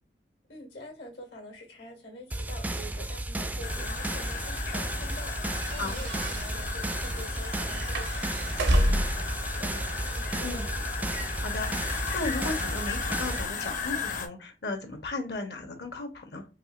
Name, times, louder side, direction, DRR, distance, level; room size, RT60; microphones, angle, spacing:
voice 1, 0.5-10.8, left 1 dB, 85° left, 1.9 m, -46 dB
sound 1, 2.3-13.5, right 1 dB, 10° right, 0.3 m, -33 dB
sound 2, 3.6-14.3, left 4 dB, 50° left, 0.7 m, -35 dB
sound 3, 5.5-9.3, equal, 75° right, 0.7 m, -29 dB
voice 2, 11.4-16.5, left 2 dB, 65° left, 1.0 m, -35 dB
4.7 x 2.8 x 2.5 m
head